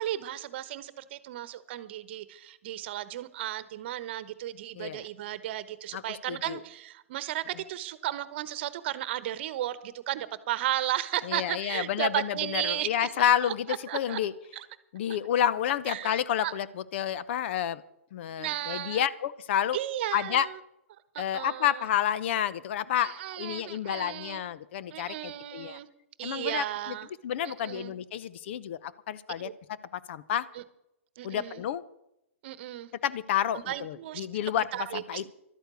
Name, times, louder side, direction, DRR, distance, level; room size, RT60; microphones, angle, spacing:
voice 1, 0.0-14.2 14.5-14.6 15.9-16.5 18.4-19.0 19.7-20.6 21.1-21.9 23.0-24.4 24.9-25.9 26.2-27.1 27.4-27.9 29.4-29.5 30.5-30.6 31.2-31.6 32.4-32.9 33.5-35.2, right 13 dB, 55° right, 15 dB, 1.0 m, -35 dB
voice 2, 5.9-6.6 11.3-14.3 14.9-16.7 16.9-17.8 18.1-19.8 20.1-20.5 21.2-25.8 26.2-26.6 27.2-29.5 30.1-30.5 31.2-31.8 33.0-34.7 34.9-35.3, left 10 dB, 55° left, 17 dB, 0.7 m, -29 dB
12.5 x 8.9 x 8.3 m, 0.83 s
hypercardioid pair, 120°, 7 cm